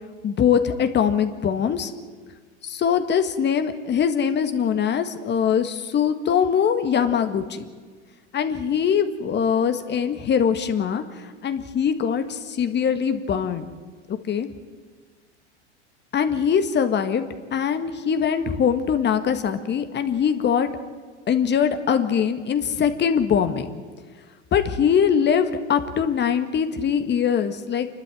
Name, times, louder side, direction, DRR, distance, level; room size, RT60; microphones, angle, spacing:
voice 1, 0.2-1.9 2.6-7.7 8.3-11.0 11.4-13.6 14.1-14.5 16.1-17.2 17.5-20.7 21.3-23.7 24.5-27.9, left 7 dB, 30° left, 8 dB, 1.8 m, -22 dB
28.0 x 12.5 x 9.0 m, 1.5 s
hypercardioid pair, 100°, 35 cm